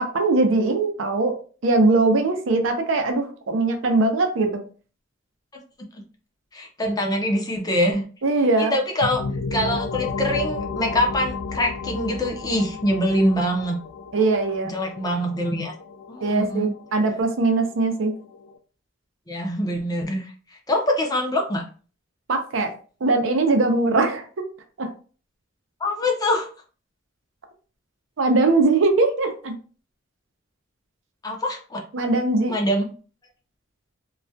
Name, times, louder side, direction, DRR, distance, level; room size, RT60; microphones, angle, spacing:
voice 1, 0.0-1.3 1.6-4.6 8.2-8.7 14.1-14.7 16.2-18.1 22.3-22.7 23.0-24.3 24.8-24.9 28.2-29.5 31.9-32.6, right 3 dB, 75° right, 5 dB, 0.5 m, -21 dB
voice 2, 6.5-8.0 8.6-9.2 9.5-13.8 14.6-15.7 16.1-16.7 19.3-20.3 20.7-21.6 25.8-26.5 31.2-31.8 32.5-32.9, left 1 dB, 20° left, 1 dB, 0.5 m, -24 dB
sound 1, 9.0-18.6, left 4 dB, 90° left, 0.3 m, -33 dB
2.3 x 2.1 x 2.6 m, 0.38 s
head